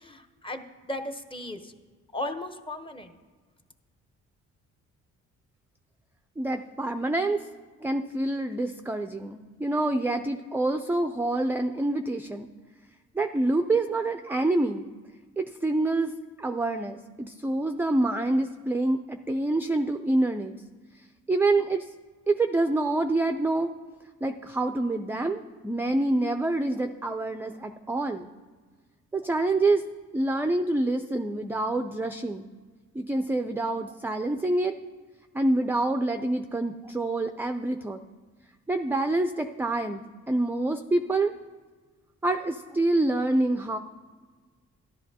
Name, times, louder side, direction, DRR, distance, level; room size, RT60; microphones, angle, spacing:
voice 1, 0.0-1.7 2.1-3.1, left 1 dB, 15° left, 6 dB, 0.8 m, -36 dB
voice 2, 6.4-7.4 7.8-12.5 13.1-14.9 15.4-16.1 16.4-20.5 21.3-21.9 22.3-23.7 24.2-28.3 29.1-29.8 30.1-32.5 32.9-34.7 35.3-38.0 38.7-41.3 42.2-43.8, right 2 dB, 5° right, 7 dB, 0.3 m, -26 dB
13.0 x 11.0 x 2.8 m, 1.4 s
cardioid pair, 90°, 30 cm